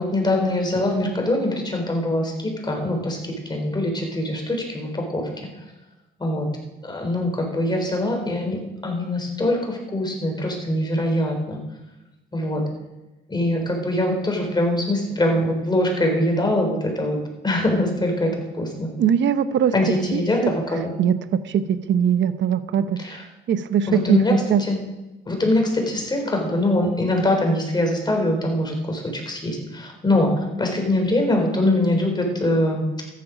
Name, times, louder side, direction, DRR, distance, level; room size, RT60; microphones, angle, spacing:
voice 1, 0.0-5.3 6.2-6.5 6.8-11.6 12.3-12.6 13.3-17.2 17.4-18.9 19.7-20.9 23.0-23.2 23.9-24.3 24.6-24.8 25.3-33.0, left 1 dB, 20° left, 2 dB, 3.8 m, -23 dB
voice 2, 19.0-19.7 20.1-20.5 21.0-23.0 23.5-24.2 24.5-24.6, right 8 dB, 70° right, 12 dB, 0.9 m, -21 dB
14.0 x 10.5 x 5.1 m, 1.1 s
cardioid pair, 90°, 20 cm